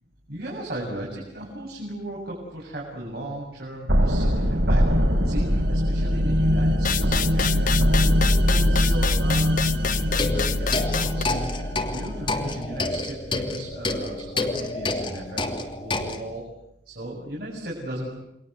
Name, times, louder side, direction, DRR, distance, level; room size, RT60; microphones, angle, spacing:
voice 1, 0.3-4.8 5.2-16.4 16.8-18.1, right 1 dB, 60° right, -3 dB, 7.9 m, -36 dB
sound 1, 3.9-12.7, equal, 85° right, 3.9 m, -22 dB
sound 2, 6.8-11.2, left 8 dB, 50° left, 1.0 m, -28 dB
sound 3, 10.1-16.2, left 2 dB, 30° left, 2.8 m, -29 dB
29.5 x 24.0 x 8.3 m, 0.83 s
head